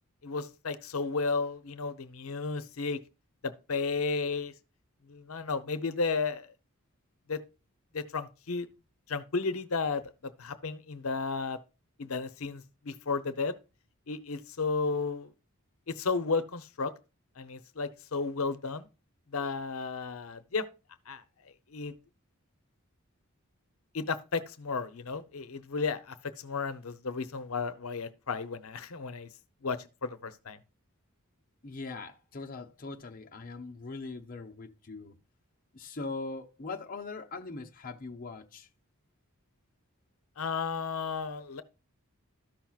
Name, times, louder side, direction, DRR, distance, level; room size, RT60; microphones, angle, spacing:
voice 1, 0.2-3.0 3.4-4.5 5.1-6.5 7.3-7.4 7.9-8.7 9.1-10.0 10.4-11.6 12.0-13.5 14.1-15.3 15.9-16.9 17.4-18.9 19.3-20.6 21.1-21.2 21.7-21.9 23.9-29.3 29.6-30.6 40.4-41.6, left 4 dB, 75° left, 0.7 m, -33 dB
voice 2, 31.6-35.1 35.7-38.7, left 3 dB, 40° left, 0.7 m, -41 dB
13.5 x 5.9 x 2.3 m
head